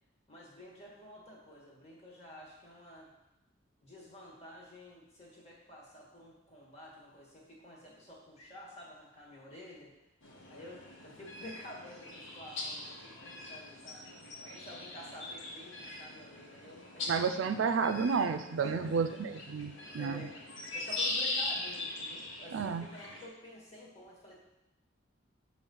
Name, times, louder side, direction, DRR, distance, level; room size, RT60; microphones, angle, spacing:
voice 1, 0.3-3.1 3.8-9.9 10.5-14.0 14.4-17.2 17.5-17.6 18.6-18.9 20.0-20.3 20.7-24.3, left 1 dB, 35° left, -4 dB, 1.8 m, -50 dB
sound 1, 10.2-23.3, left 2 dB, 85° left, 1.1 m, -41 dB
voice 2, 17.1-20.3 22.5-22.8, right 5 dB, 75° right, 9 dB, 0.4 m, -31 dB
7.1 x 3.1 x 5.4 m, 0.90 s
head